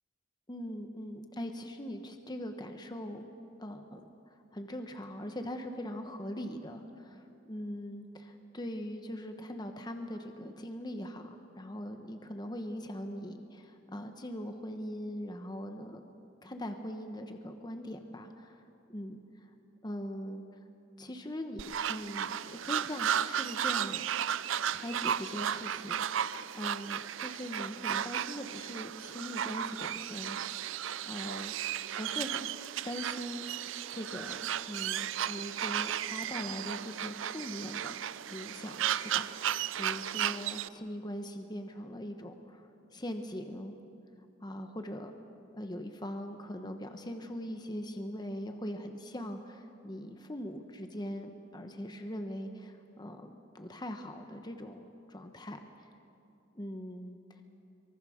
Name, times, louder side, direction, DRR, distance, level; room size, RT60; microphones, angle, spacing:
voice 1, 0.5-3.2 3.6-16.0 16.4-18.6 18.9-19.2 19.8-20.4 21.0-24.0 24.7-30.7 31.0-32.4 32.8-33.4 33.9-37.9 38.3-43.8 44.4-45.1 45.5-54.8 55.1-55.9 56.5-57.2, equal, 20° left, 6 dB, 1.1 m, -41 dB
sound 1, 21.6-40.7, right 9 dB, 65° right, 0.5 m, -34 dB
24.0 x 23.5 x 6.5 m, 2.7 s
head